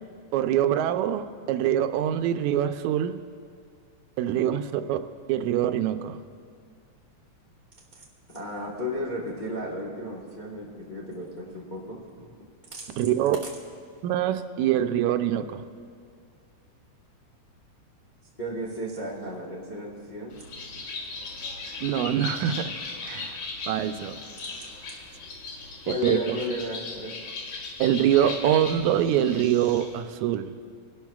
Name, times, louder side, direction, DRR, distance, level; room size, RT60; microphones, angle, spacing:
voice 1, 0.3-3.2 4.2-5.0 5.3-6.2 13.0-13.4 14.0-15.6 21.8-22.7 23.0-23.4 23.7-24.1 26.0-26.4 27.8-30.5, right 10 dB, 85° right, 9 dB, 1.9 m, -24 dB
voice 2, 8.3-12.8 18.4-20.4 20.7-20.8 25.8-27.2, left 1 dB, 55° left, -4 dB, 0.5 m, -34 dB
Bird, 20.3-30.0, left 3 dB, 85° left, 3.0 m, -38 dB
22.0 x 12.0 x 2.3 m, 2.2 s
omnidirectional pair, 3.3 m